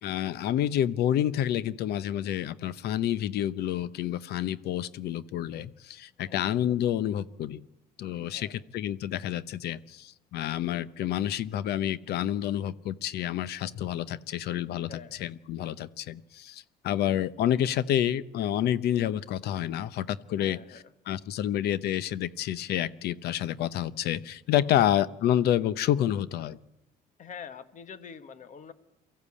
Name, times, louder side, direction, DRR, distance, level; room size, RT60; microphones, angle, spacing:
voice 1, 0.0-7.6 8.0-20.6 21.1-26.6, left 11 dB, 70° left, 17 dB, 0.9 m, -29 dB
voice 2, 8.2-8.6 14.9-15.2 20.4-20.9 24.6-24.9 27.2-28.7, left 7 dB, 50° left, 12 dB, 1.5 m, -45 dB
23.5 x 14.5 x 8.6 m, 0.94 s
cardioid pair, 110°, 17 cm